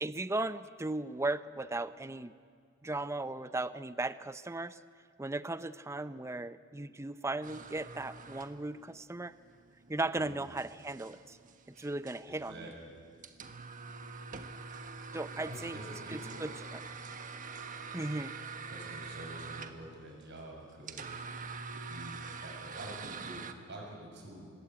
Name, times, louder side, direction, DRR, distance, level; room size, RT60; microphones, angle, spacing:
voice 1, 0.0-2.3 2.8-4.8 5.2-9.3 9.9-11.4 11.8-12.7 15.1-15.8 16.1-16.8 17.9-18.3, right 2 dB, 15° right, 14 dB, 0.6 m, -36 dB
sound 1, 7.4-23.5, right 4 dB, 40° right, 1.3 m, -45 dB
voice 2, 12.2-13.0 15.1-16.5 18.7-21.2 21.7-24.5, right 1 dB, 60° right, 0 dB, 7.0 m, -47 dB
25.5 x 21.0 x 8.7 m, 2.2 s
head